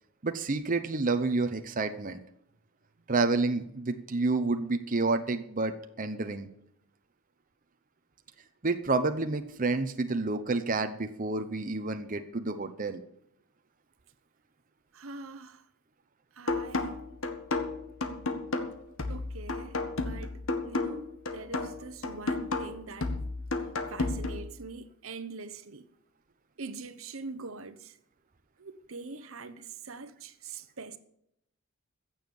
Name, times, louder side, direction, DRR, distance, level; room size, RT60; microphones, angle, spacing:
voice 1, 0.2-2.2 3.1-6.5 8.6-13.0, right 3 dB, 40° right, 0.8 m, -29 dB
voice 2, 14.9-15.7 16.3-17.0 19.1-23.2 23.9-25.9 26.6-28.0 28.6-31.0, right 4 dB, 70° right, 1.0 m, -43 dB
sound 1, 16.5-24.5, left 3 dB, 65° left, 1.6 m, -32 dB
15.5 x 7.2 x 7.1 m
head